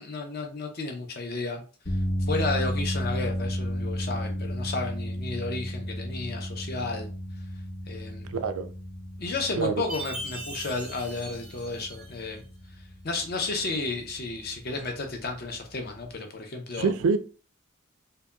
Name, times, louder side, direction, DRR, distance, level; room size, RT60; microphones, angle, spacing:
voice 1, 0.0-1.6 2.3-7.1 7.9-8.3 9.2-12.4 13.0-16.9, left 3 dB, 45° left, 0.5 m, -32 dB
sound 1, 1.8-16.1, equal, 80° left, 1.1 m, -34 dB
voice 2, 8.3-8.7 9.6-9.8 16.8-17.2, right 5 dB, 75° right, 0.3 m, -25 dB
Chime, 9.9-12.4, right 1 dB, 5° right, 0.5 m, -40 dB
2.7 x 2.1 x 2.3 m
head